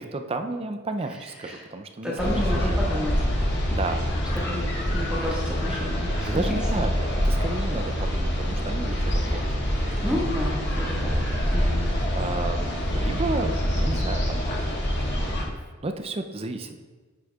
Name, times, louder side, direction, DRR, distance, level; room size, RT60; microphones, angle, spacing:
voice 1, 0.0-2.8 3.7-4.1 6.2-9.6 10.7-11.0 12.2-14.5 15.1-15.5 15.8-16.8, right 2 dB, 25° right, 7 dB, 0.4 m, -32 dB
voice 2, 2.0-3.2 3.5-3.7 4.4-4.7 4.9-6.5 6.7-6.8 8.9-9.0 9.8-11.1 11.5-11.8, equal, 5° right, -5 dB, 1.6 m, -31 dB
sound 1, 2.2-15.4, equal, 55° left, 1.8 m, -25 dB
9.7 x 6.3 x 2.4 m, 1.4 s
head